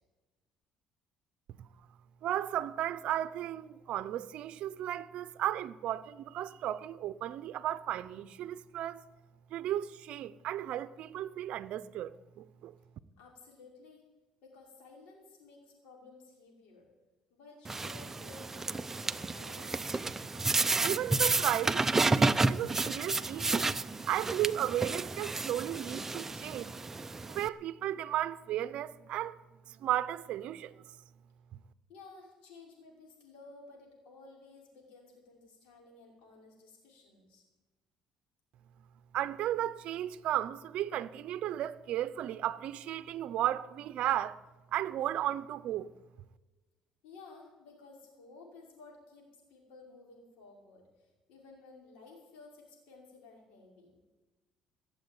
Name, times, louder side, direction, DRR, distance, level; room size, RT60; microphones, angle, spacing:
voice 1, 2.2-9.0 9.5-12.7 20.8-23.8 24.1-26.8 27.3-29.4 29.7-30.8 39.1-44.4 44.7-45.9, right 12 dB, 65° right, 0.7 m, -34 dB
voice 2, 13.2-14.1 14.4-16.9 17.3-19.8 31.9-37.4 47.0-54.0, left 3 dB, 85° left, 5.7 m, -55 dB
sound 1, 17.6-27.5, right 3 dB, 20° right, 0.6 m, -31 dB
17.5 x 7.6 x 9.6 m
cardioid pair, 105°, 2 cm